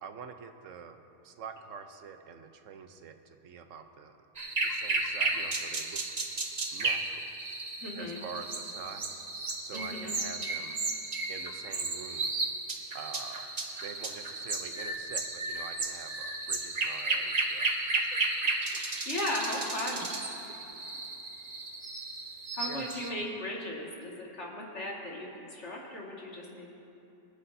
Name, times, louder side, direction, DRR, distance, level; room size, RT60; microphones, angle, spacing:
voice 1, 0.0-1.0 1.2-4.2 4.6-6.0 6.7-7.3 7.9-9.2 9.6-10.8 11.3-12.4 12.9-13.5 13.8-18.1 20.5-21.0 22.7-23.1, right 6 dB, 85° right, 7 dB, 1.1 m, -46 dB
sound 1, 4.4-23.1, right 3 dB, 35° right, 0.9 m, -34 dB
voice 2, 7.8-8.2 9.7-10.2 19.1-20.0 22.5-26.8, left 1 dB, 65° left, -3 dB, 2.2 m, -36 dB
25.0 x 9.8 x 2.7 m, 2.9 s
omnidirectional pair, 1.3 m